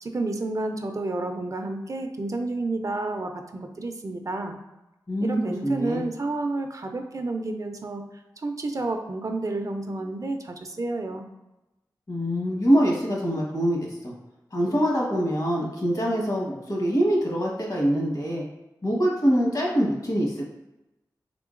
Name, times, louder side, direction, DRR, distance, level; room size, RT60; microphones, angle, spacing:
voice 1, 0.0-4.6 5.2-11.3, right 2 dB, 45° right, 5 dB, 0.4 m, -30 dB
voice 2, 5.1-6.0 12.1-14.1 14.5-18.4 18.8-20.5, equal, 55° left, -2 dB, 1.2 m, -24 dB
3.6 x 3.4 x 2.5 m, 0.97 s
wide cardioid pair, 65°, 8 cm